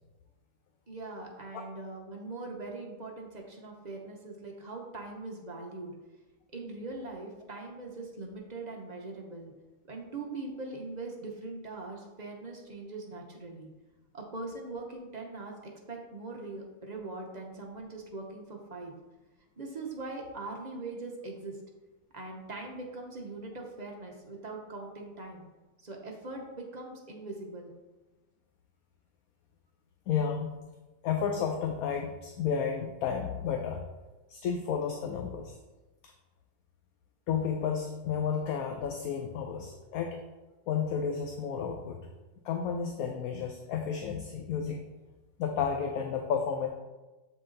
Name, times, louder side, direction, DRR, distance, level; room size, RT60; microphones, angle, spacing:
voice 1, 0.9-5.9 6.5-9.5 9.9-13.7 14.1-18.9 19.6-21.6 22.1-25.4 25.8-27.7, right 3 dB, 40° right, 0 dB, 0.7 m, -41 dB
voice 2, 30.1-30.5 31.0-33.8 34.3-35.6 37.3-40.2 40.7-42.0 42.4-44.8 45.4-46.7, left 7 dB, 70° left, 3 dB, 1.0 m, -32 dB
7.4 x 4.0 x 3.8 m, 1.1 s
omnidirectional pair, 1.7 m